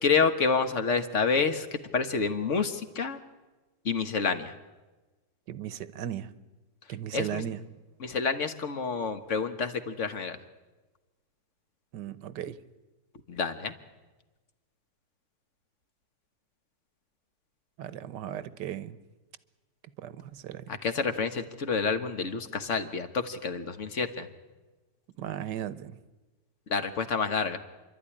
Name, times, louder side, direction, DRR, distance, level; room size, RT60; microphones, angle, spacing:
voice 1, 0.0-3.2 3.8-4.5 7.1-7.4 8.0-10.4 13.3-13.7 20.8-24.3 26.7-27.6, left 5 dB, 45° left, 1.5 m, -28 dB
voice 2, 5.5-6.3 6.9-7.6 11.9-12.6 17.8-19.0 20.0-20.8 25.2-26.0, right 10 dB, 75° right, 1.5 m, -36 dB
28.5 x 12.0 x 10.0 m
omnidirectional pair, 1.9 m